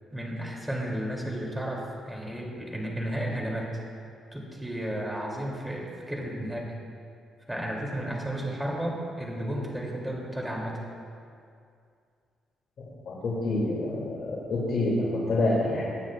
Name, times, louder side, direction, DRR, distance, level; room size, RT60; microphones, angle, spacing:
voice 1, 0.1-3.7 4.3-6.6 7.5-10.8, right 1 dB, 5° right, -2 dB, 3.0 m, -33 dB
voice 2, 13.1-16.0, left 2 dB, 60° left, -6 dB, 2.7 m, -27 dB
21.5 x 9.4 x 2.5 m, 2.4 s
cardioid pair, 90°, 0 cm